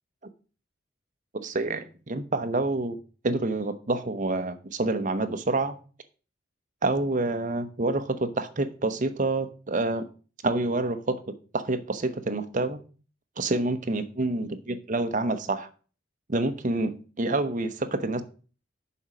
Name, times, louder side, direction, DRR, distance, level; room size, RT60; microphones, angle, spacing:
voice 1, 1.4-3.0 3.2-5.8 6.8-10.1 10.4-11.2 11.5-12.8 13.4-15.7 16.3-18.2, right 2 dB, 40° right, 0.8 m, -27 dB
7.1 x 5.0 x 6.0 m
head